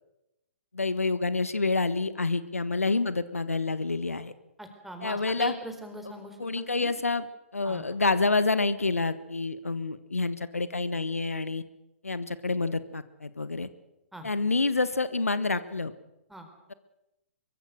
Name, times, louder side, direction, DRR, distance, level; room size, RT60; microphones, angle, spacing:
voice 1, 0.7-4.3 5.0-5.5 6.4-7.3 7.5-11.6 12.0-13.7 14.2-15.9, left 3 dB, 80° left, 14 dB, 1.4 m, -28 dB
voice 2, 4.6-6.9 7.6-7.8 14.1-14.3 16.3-16.5, right 1 dB, 5° right, 5 dB, 4.1 m, -42 dB
24.0 x 23.0 x 6.6 m, 0.92 s
figure-of-eight pair, 125°, 8 cm